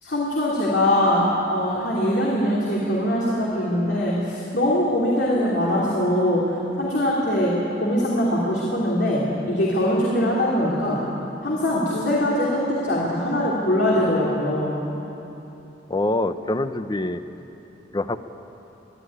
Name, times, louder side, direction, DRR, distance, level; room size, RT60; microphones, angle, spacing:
voice 1, 0.0-7.5 7.8-11.0 11.4-14.8, left 1 dB, 75° left, -5 dB, 3.1 m, -22 dB
voice 2, 15.9-17.2 17.9-18.2, left 2 dB, 25° left, 10 dB, 0.7 m, -24 dB
21.5 x 12.5 x 9.8 m, 3.0 s
head